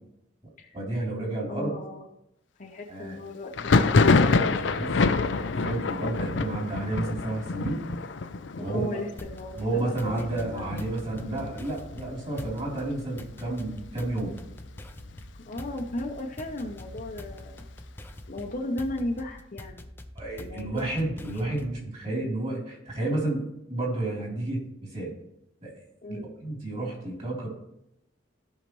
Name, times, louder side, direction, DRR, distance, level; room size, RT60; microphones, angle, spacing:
voice 1, 0.7-1.7 2.9-3.2 4.1-7.8 8.6-9.0 9.6-14.3 20.1-25.1 25.6-25.7 26.1-27.5, right 2 dB, 35° right, -2 dB, 3.4 m, -31 dB
voice 2, 1.5-2.0 2.6-3.8 8.6-10.7 15.4-17.6 18.3-19.9 20.4-20.9 21.3-21.4 26.0-26.3, left 1 dB, 45° left, 1 dB, 0.8 m, -36 dB
Thunder, 3.5-13.0 13.3-14.0 14.2-15.2 15.6-17.3, left 3 dB, 75° left, 0.5 m, -27 dB
sound 1, 9.2-21.9, left 1 dB, 10° left, 0.6 m, -44 dB
15.5 x 5.7 x 3.1 m, 0.83 s
head